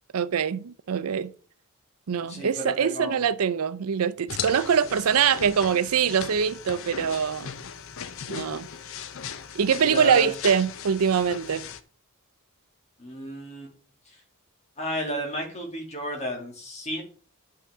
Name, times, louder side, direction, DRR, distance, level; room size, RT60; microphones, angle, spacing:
voice 1, 0.1-1.3 2.1-7.5 8.3-8.7 9.5-11.6, right 7 dB, 80° right, 0.5 m, -24 dB
voice 2, 2.3-3.2 9.8-10.3 13.0-13.7 14.1-14.2 14.8-17.0, equal, 30° left, 2.2 m, -32 dB
sound 1, 4.3-11.8, left 7 dB, 60° left, 0.6 m, -38 dB
9.8 x 5.7 x 3.5 m
head